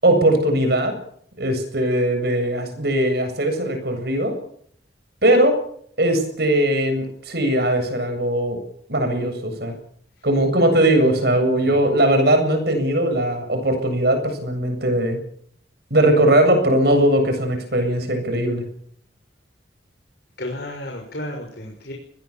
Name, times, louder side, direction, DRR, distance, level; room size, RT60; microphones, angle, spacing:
voice 1, 0.0-1.0 1.4-4.4 5.2-5.6 6.0-8.6 8.9-9.7 10.2-15.2 15.9-18.7, right 1 dB, 55° right, 7 dB, 7.8 m, -19 dB
voice 2, 20.4-21.9, left 1 dB, 55° left, 1 dB, 6.1 m, -33 dB
25.5 x 20.5 x 7.3 m, 0.66 s
head